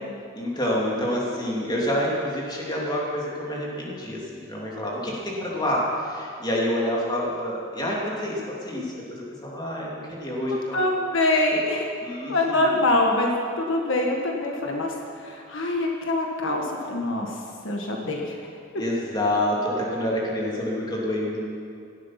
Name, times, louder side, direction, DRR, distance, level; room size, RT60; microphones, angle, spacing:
voice 1, 0.4-10.8 12.0-12.7 18.7-21.4, left 1 dB, 20° left, -4 dB, 2.8 m, -28 dB
voice 2, 10.7-11.9 12.3-18.4 18.7-18.8, left 2 dB, 70° left, 0 dB, 1.5 m, -25 dB
17.0 x 12.0 x 5.9 m, 2.4 s
head